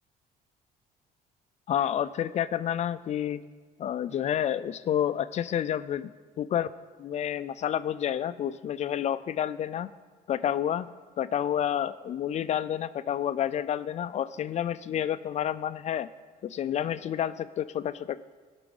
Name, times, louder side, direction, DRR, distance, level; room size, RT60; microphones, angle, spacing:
voice 1, 1.7-3.4 3.8-6.1 6.4-6.7 7.0-9.9 10.3-10.9 11.2-16.1 16.4-18.2, left 10 dB, 40° left, 14 dB, 0.4 m, -29 dB
17.5 x 5.9 x 3.9 m, 1.5 s
cardioid pair, 110°, 17 cm